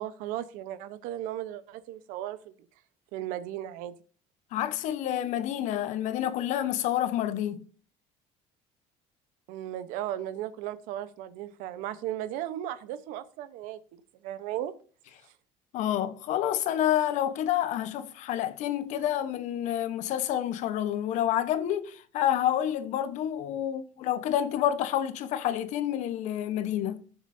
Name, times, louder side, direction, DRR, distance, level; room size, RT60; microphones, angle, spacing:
voice 1, 0.0-2.5 3.1-3.9 9.5-13.8 14.2-14.7, right 12 dB, 80° right, 1.0 m, -36 dB
voice 2, 4.5-7.6 15.7-27.0, left 11 dB, 65° left, 1.0 m, -28 dB
18.5 x 7.1 x 2.7 m
cardioid pair, 135°, 13 cm